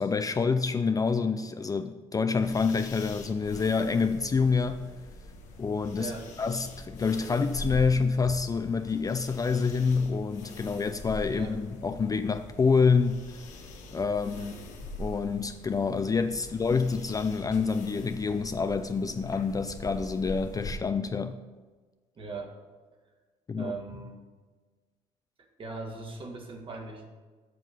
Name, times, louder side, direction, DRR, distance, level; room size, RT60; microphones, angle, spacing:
voice 1, 0.0-4.9 5.6-6.1 6.4-13.2 13.9-14.5 15.0-21.4 23.5-23.7, left 5 dB, 25° left, 9 dB, 0.4 m, -27 dB
sound 1, 2.4-20.7, left 1 dB, 75° left, 1.1 m, -43 dB
voice 2, 6.0-6.3 11.3-11.5 14.4-14.6 22.2-22.5 23.6-24.2 25.6-27.1, right 3 dB, 40° right, 2 dB, 1.9 m, -39 dB
7.4 x 5.8 x 5.7 m, 1.3 s
supercardioid pair, 70°, 13 cm